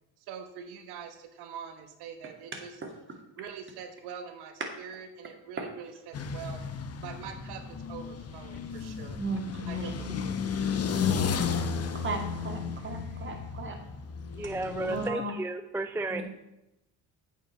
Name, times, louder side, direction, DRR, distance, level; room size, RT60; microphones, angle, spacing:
voice 1, 0.2-2.7 3.4-6.7 7.0-9.2 9.7-10.1, right 7 dB, 75° right, 7 dB, 1.1 m, -44 dB
sound 1, 6.1-15.1, left 6 dB, 40° left, 1.0 m, -33 dB
voice 2, 9.2-10.1 11.0-11.6 12.0-13.8 14.9-15.3 16.1-16.2, right 3 dB, 30° right, 2 dB, 2.5 m, -36 dB
voice 3, 14.3-16.2, right 2 dB, 5° right, 9 dB, 0.4 m, -33 dB
8.6 x 5.4 x 6.7 m, 0.90 s
supercardioid pair, 85°, 39 cm